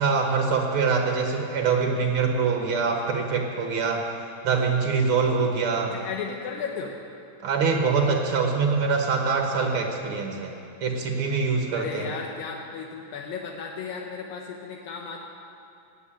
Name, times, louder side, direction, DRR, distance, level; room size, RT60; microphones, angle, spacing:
voice 1, 0.0-4.1 4.4-6.0 7.4-12.1, right 5 dB, 80° right, 2 dB, 1.1 m, -24 dB
voice 2, 5.9-7.0 11.7-15.3, left 5 dB, 75° left, 0 dB, 2.6 m, -35 dB
18.5 x 8.2 x 8.8 m, 2.6 s
omnidirectional pair, 4.2 m